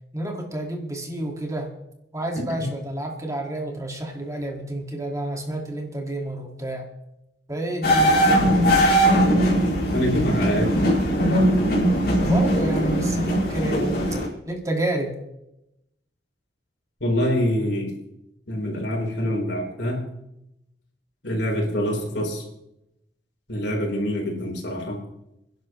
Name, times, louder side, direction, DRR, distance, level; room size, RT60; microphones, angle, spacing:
voice 1, 0.1-1.7 2.1-6.9 7.5-8.2 12.2-14.0 14.4-15.2, right 1 dB, 20° right, 2 dB, 1.9 m, -29 dB
sound 1, 7.8-14.3, equal, 65° left, 4.4 m, -20 dB
voice 2, 9.9-10.9 17.0-17.9 18.5-20.1 21.2-22.4 23.5-25.0, equal, 85° left, 0 dB, 4.0 m, -25 dB
26.5 x 11.0 x 3.1 m, 0.85 s
head